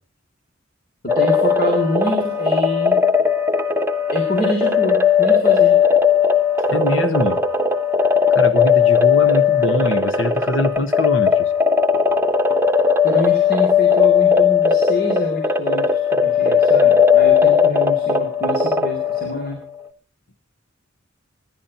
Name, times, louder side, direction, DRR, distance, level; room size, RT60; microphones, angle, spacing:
voice 1, 1.1-3.0 4.1-5.8 13.0-19.6, left 1 dB, 50° left, 2 dB, 3.4 m, -26 dB
sound 1, 1.1-19.5, left 6 dB, 10° right, 1.1 m, -17 dB
voice 2, 6.7-7.4 8.3-11.5, left 2 dB, 75° left, 9 dB, 1.4 m, -23 dB
27.0 x 11.0 x 4.3 m, 0.36 s
head